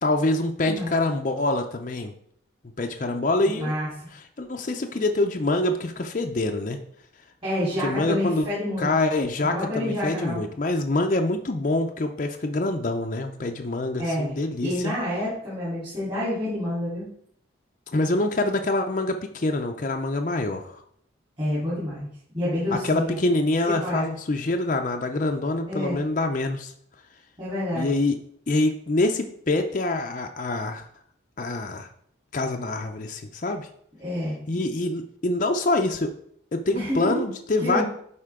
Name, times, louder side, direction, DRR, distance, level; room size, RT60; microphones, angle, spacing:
voice 1, 0.0-2.1 2.8-3.7 4.4-6.8 7.8-8.4 8.8-14.9 17.9-20.7 22.7-26.7 27.7-28.2 28.5-30.9 31.4-31.9 32.3-33.7 34.5-36.1 36.5-37.8, left 2 dB, 40° left, 4 dB, 0.5 m, -25 dB
voice 2, 3.5-3.9 7.4-8.9 9.4-10.4 14.0-14.3 14.6-17.1 21.4-22.1 22.3-23.2 23.8-24.0 25.7-26.0 27.4-27.9 34.0-34.4 36.7-37.2 37.6-37.8, left 1 dB, 30° right, -11 dB, 3.5 m, -28 dB
11.0 x 4.3 x 3.7 m, 0.67 s
head